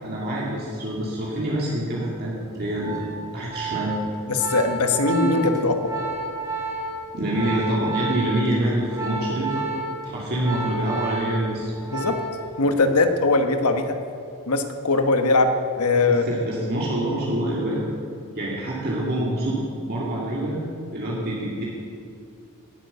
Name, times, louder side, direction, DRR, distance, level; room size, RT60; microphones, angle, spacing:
voice 1, 0.0-3.9 7.1-9.6 10.0-11.7 16.1-17.8 18.4-20.6 20.9-21.6, right 1 dB, 45° right, -5 dB, 2.3 m, -26 dB
Organ, 2.5-12.5 12.8-13.1, right 3 dB, 15° right, 4.3 m, -31 dB
voice 2, 4.3-5.9 11.9-12.2 12.6-13.9 14.5-15.5 15.8-16.4, left 3 dB, 80° left, 6 dB, 1.4 m, -20 dB
18.0 x 9.3 x 6.8 m, 2.5 s
head